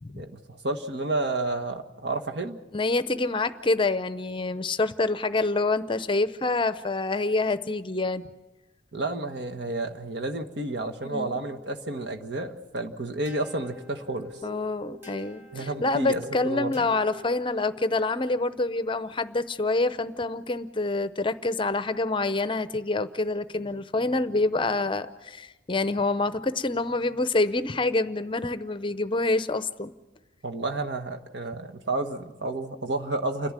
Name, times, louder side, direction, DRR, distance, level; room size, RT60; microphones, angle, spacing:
voice 1, 0.1-2.6 8.9-14.4 15.5-16.9 30.4-33.5, right 2 dB, 60° right, 5 dB, 1.4 m, -31 dB
voice 2, 2.7-8.2 11.0-11.4 14.4-29.9, left 2 dB, 25° left, 13 dB, 0.7 m, -27 dB
sound 1, 13.2-18.0, left 2 dB, 10° right, 3.5 m, -46 dB
29.0 x 11.0 x 9.6 m, 1.1 s
head